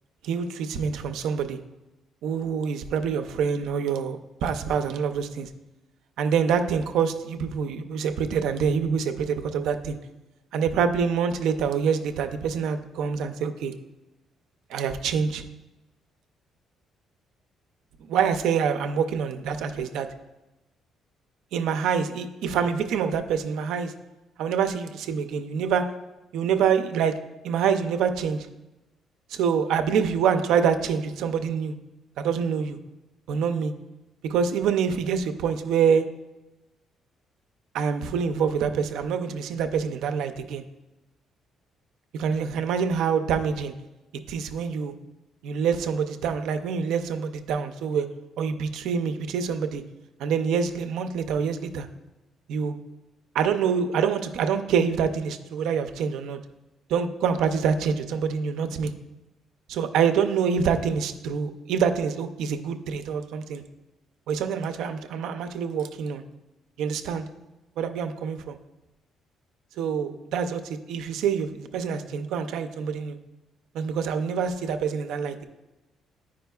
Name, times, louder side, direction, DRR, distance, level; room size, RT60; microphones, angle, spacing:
voice 1, 0.2-1.6 2.2-5.5 6.2-10.0 10.5-13.7 14.7-15.4 18.1-20.1 21.5-23.9 24.4-25.8 26.3-27.1 27.4-28.5 29.3-31.7 32.2-32.8 33.3-33.7 34.2-36.0 37.7-40.6 42.1-43.7 44.3-44.9 45.4-48.1 48.4-49.8 50.2-51.9 52.5-52.8 53.3-56.4 56.9-58.9 59.7-63.6 64.3-66.2 66.8-67.3 67.8-68.6 69.8-73.2 73.7-75.4, right 6 dB, 80° right, 8 dB, 0.4 m, -26 dB
10.0 x 4.9 x 2.3 m, 1.0 s
cardioid pair, 170°, 0 cm